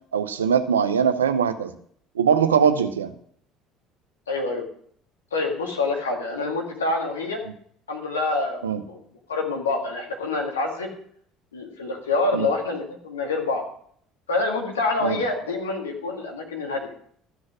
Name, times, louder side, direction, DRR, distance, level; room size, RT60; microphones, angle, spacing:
voice 1, 0.1-1.7 2.2-3.1 8.6-8.8 12.3-12.5 15.0-15.2, right 7 dB, 85° right, 10 dB, 0.7 m, -21 dB
voice 2, 4.3-4.6 5.3-7.4 7.9-9.0 9.3-10.9 11.5-13.6 14.3-16.9, left 3 dB, 85° left, 1 dB, 2.1 m, -26 dB
13.5 x 6.3 x 6.2 m, 0.63 s
hypercardioid pair, 60°, 0 cm